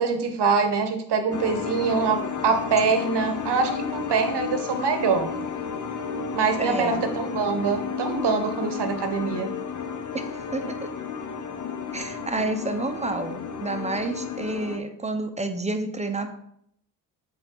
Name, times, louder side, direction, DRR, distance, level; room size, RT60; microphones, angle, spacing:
voice 1, 0.0-5.3 6.3-9.5, right 5 dB, 60° right, 7 dB, 1.3 m, -24 dB
sound 1, 1.3-14.8, left 6 dB, 40° left, 0.9 m, -32 dB
voice 2, 6.6-7.0 10.1-10.7 11.9-16.4, right 2 dB, 15° right, 7 dB, 1.1 m, -29 dB
7.6 x 3.8 x 4.7 m, 0.72 s
supercardioid pair, 55°, 46 cm